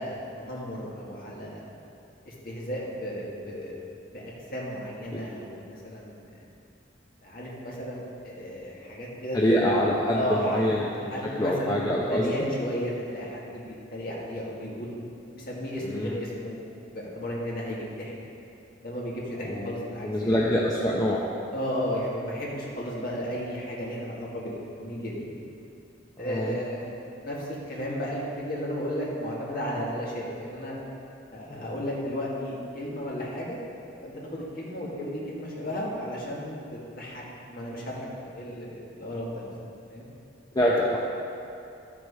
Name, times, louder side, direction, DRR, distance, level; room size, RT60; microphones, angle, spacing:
voice 1, 0.0-1.7 2.3-6.4 7.2-9.4 10.1-10.6 11.1-14.9 15.3-16.6 16.9-18.1 18.8-20.4 21.5-25.3 26.2-26.9 27.2-30.8 31.3-33.6 34.0-39.5 39.9-40.0, equal, 50° left, -5 dB, 1.9 m, -34 dB
voice 2, 9.3-10.8 11.4-12.3 15.8-16.2 19.4-19.7 20.0-21.2 26.2-26.5 31.5-31.6 40.5-41.0, equal, 20° left, -4 dB, 0.7 m, -25 dB
12.0 x 6.2 x 4.8 m, 2.6 s
head